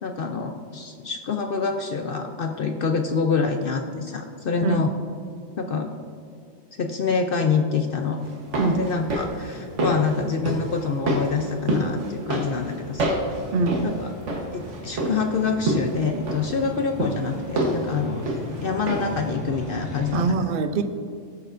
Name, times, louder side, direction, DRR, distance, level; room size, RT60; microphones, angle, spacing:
voice 1, 0.0-4.9 5.6-5.9 6.7-8.2 8.8-13.2 13.8-14.1 14.5-18.2 18.6-20.4, left 5 dB, 55° left, 4 dB, 0.7 m, -26 dB
sound 1, 8.3-19.3 19.5-19.6, right 1 dB, 75° right, 1.5 m, -28 dB
sound 2, 12.6-20.3, equal, 15° right, 1.3 m, -39 dB
voice 2, 20.1-20.8, right 4 dB, 55° right, 7 dB, 0.6 m, -23 dB
17.0 x 6.7 x 2.5 m, 2.3 s
omnidirectional pair, 1.2 m